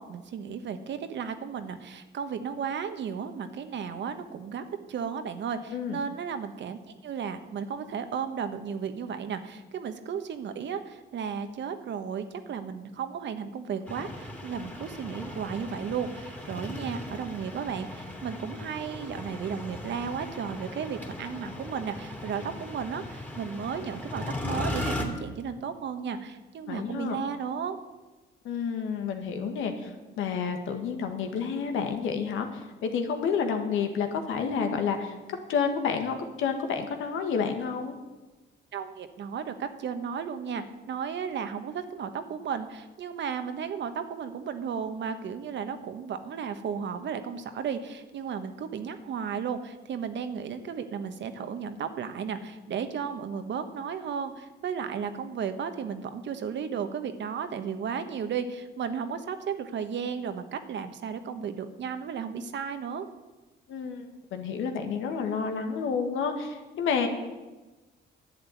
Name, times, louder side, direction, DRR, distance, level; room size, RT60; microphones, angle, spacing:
voice 1, 0.0-27.8 38.7-63.1, right 7 dB, 65° right, 9 dB, 1.3 m, -34 dB
sound 1, 13.9-25.1, left 1 dB, 10° left, 2.6 m, -38 dB
voice 2, 26.7-27.2 28.4-29.9 30.2-35.2 35.5-37.9 63.7-67.1, left 6 dB, 85° left, 5 dB, 1.8 m, -30 dB
11.0 x 7.9 x 9.4 m, 1.2 s
cardioid pair, 90°, 20 cm